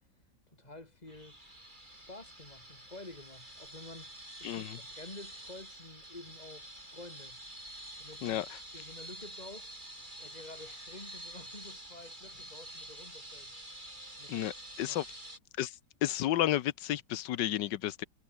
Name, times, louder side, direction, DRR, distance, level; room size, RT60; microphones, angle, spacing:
voice 1, 0.5-1.4 1.9-7.4 8.0-8.4 8.7-9.7 10.2-13.6 14.2-14.5 14.8-15.0, left 2 dB, 20° left, 3.5 m, -50 dB
sound 1, 1.1-15.4, right 1 dB, 25° right, 8.3 m, -48 dB
voice 2, 4.4-4.8 8.2-8.6 14.3-15.0 15.6-18.0, left 13 dB, 85° left, 1.5 m, -32 dB
omnidirectional pair, 1.9 m